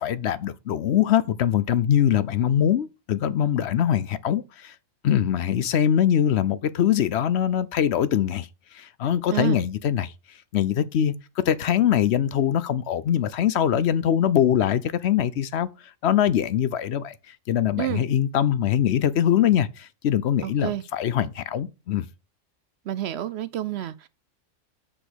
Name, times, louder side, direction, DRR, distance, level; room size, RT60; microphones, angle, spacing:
voice 1, 0.0-4.7 5.0-22.1, left 10 dB, 65° left, 0.8 m, -23 dB
voice 2, 20.4-20.8 22.8-24.1, right 12 dB, 65° right, 0.7 m, -29 dB
6.1 x 5.2 x 6.2 m
omnidirectional pair, 1.3 m